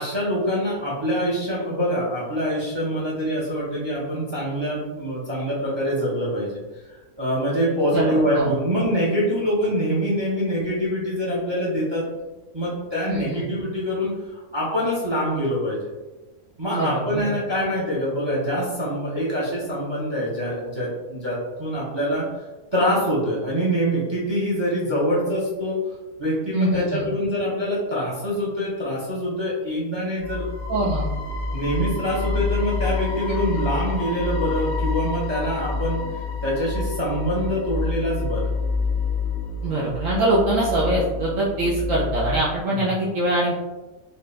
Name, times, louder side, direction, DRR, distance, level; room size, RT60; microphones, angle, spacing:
voice 1, 0.0-6.6 7.2-12.0 12.5-15.9 16.6-22.3 22.7-25.8 26.2-30.8 31.5-36.0 36.4-38.5 42.7-42.9, equal, 25° right, -6 dB, 0.7 m, -25 dB
voice 2, 7.9-8.5 13.1-13.4 16.7-17.3 26.5-27.0 30.7-31.1 39.6-43.5, right 1 dB, 65° right, -7 dB, 1.1 m, -23 dB
sound 1, 30.2-42.4, left 3 dB, 60° left, 0.7 m, -28 dB
4.2 x 2.5 x 3.3 m, 1.2 s
omnidirectional pair, 1.5 m